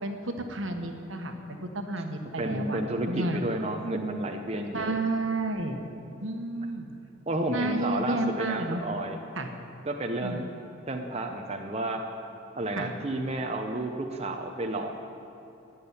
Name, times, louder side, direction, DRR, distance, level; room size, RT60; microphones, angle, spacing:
voice 1, 0.0-2.8 3.1-3.4 4.7-5.8 6.2-6.9 7.5-8.8 9.3-9.5 10.2-10.4 12.8-12.9, right 2 dB, 75° right, 5 dB, 1.4 m, -31 dB
voice 2, 2.4-5.0 7.3-9.2 9.9-10.4 10.9-12.0 12.6-15.0, right 1 dB, 30° right, 3 dB, 0.8 m, -31 dB
14.0 x 8.9 x 9.7 m, 2.9 s
head